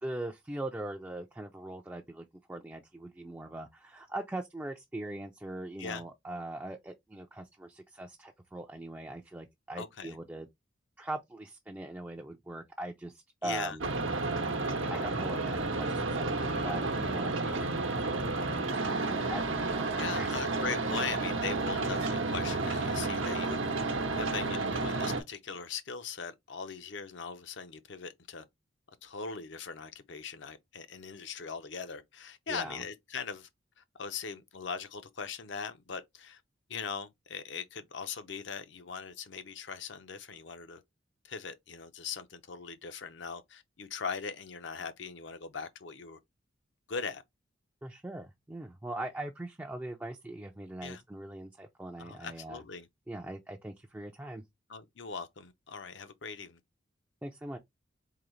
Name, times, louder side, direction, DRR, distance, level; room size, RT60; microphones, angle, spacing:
voice 1, 0.0-10.5 11.0-13.8 14.9-20.3 32.5-32.8 47.8-52.6 53.1-54.4 57.2-57.6, right 1 dB, 10° right, 0.3 m, -41 dB
voice 2, 9.7-10.2 13.4-13.8 20.0-28.4 29.0-33.5 33.8-36.4 36.7-40.8 41.2-46.2 46.9-47.2 50.8-51.0 52.0-52.9 54.7-56.6, left 5 dB, 65° left, 0.6 m, -40 dB
sound 1, 13.8-25.2, right 3 dB, 85° right, 0.8 m, -31 dB
3.8 x 2.7 x 3.1 m
head